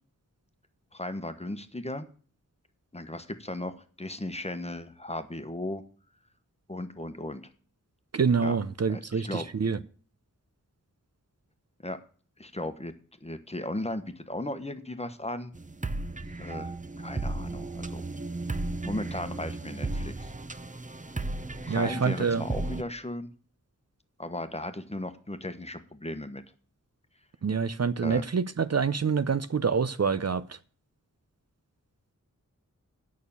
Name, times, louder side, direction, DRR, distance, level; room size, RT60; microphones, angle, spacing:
voice 1, 0.9-2.1 2.9-5.8 6.7-7.4 8.4-8.6 8.9-9.5 11.8-12.0 12.4-12.9 13.2-15.5 16.4-18.0 18.8-20.3 21.6-23.3 24.2-26.4 28.0-28.2, left 1 dB, 20° left, 1.1 m, -36 dB
voice 2, 8.1-9.8 21.7-22.5 27.4-30.6, right 5 dB, 50° right, 0.6 m, -26 dB
sound 1, 15.5-22.8, right 2 dB, 25° right, 0.8 m, -35 dB
9.4 x 6.3 x 7.0 m
wide cardioid pair, 75°, 33 cm